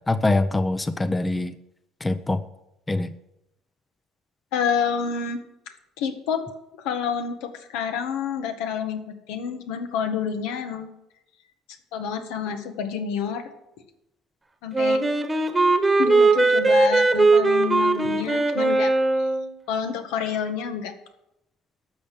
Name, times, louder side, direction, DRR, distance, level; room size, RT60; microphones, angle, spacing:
voice 1, 0.1-1.5 2.0-2.4 2.9-3.1, left 2 dB, 10° left, 12 dB, 0.5 m, -23 dB
voice 2, 4.5-5.4 6.0-6.4 6.8-9.0 9.3-10.9 11.9-13.4 14.6-15.0 16.0-19.3 19.7-20.9, left 7 dB, 85° left, 7 dB, 1.7 m, -28 dB
Wind instrument woodwind instrument, 14.7-19.5, right 3 dB, 10° right, 1.3 m, -19 dB
12.0 x 6.6 x 8.4 m, 0.86 s
cardioid pair, 150°, 0 cm